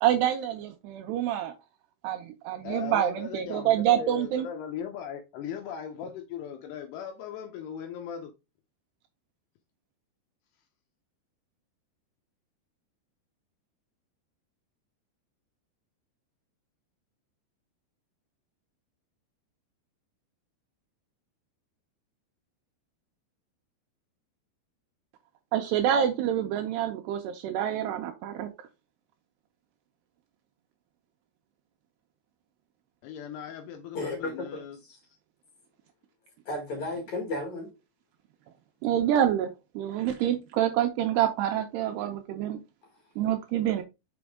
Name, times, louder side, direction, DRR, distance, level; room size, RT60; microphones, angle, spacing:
voice 1, 0.0-1.5 2.0-4.5 25.5-28.7 38.8-39.5 39.8-42.6 43.2-43.8, right 11 dB, 80° right, 2.5 m, -27 dB
voice 2, 2.6-8.3 33.0-34.8, left 8 dB, 80° left, 2.5 m, -38 dB
voice 3, 33.9-35.0 36.5-37.7, left 2 dB, 55° left, 2.2 m, -34 dB
6.1 x 5.0 x 3.5 m
omnidirectional pair, 5.3 m